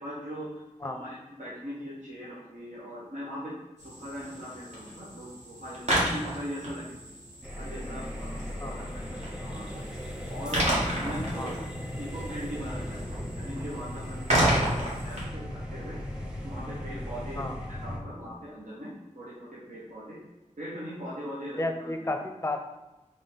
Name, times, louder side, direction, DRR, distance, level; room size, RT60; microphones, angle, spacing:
voice 1, 0.0-3.5 3.8-7.0 7.4-9.7 10.3-10.6 11.0-11.6 12.0-16.0 16.4-20.2 20.6-22.1, equal, 75° right, -8 dB, 1.0 m, -40 dB
sound 1, 3.8-15.2, right 1 dB, 60° right, 1.5 m, -32 dB
sound 2, 7.4-18.0, left 1 dB, 5° right, 0.9 m, -37 dB
voice 2, 21.6-22.6, left 2 dB, 20° left, 5 dB, 0.5 m, -32 dB
3.7 x 3.3 x 4.2 m, 1.0 s
wide cardioid pair, 45°, 13 cm